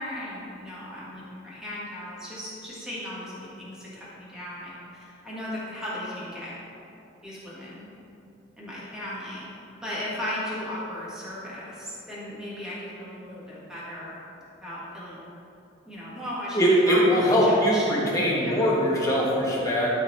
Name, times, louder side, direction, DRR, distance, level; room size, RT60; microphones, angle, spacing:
voice 1, 0.0-6.6 7.2-7.9 8.6-9.4 9.8-14.2 14.6-15.2 15.9-17.9 18.4-18.8, left 1 dB, 5° right, -9 dB, 1.9 m, -36 dB
voice 2, 16.5-19.9, equal, 20° left, -6 dB, 1.7 m, -21 dB
12.5 x 4.4 x 4.2 m, 2.9 s
head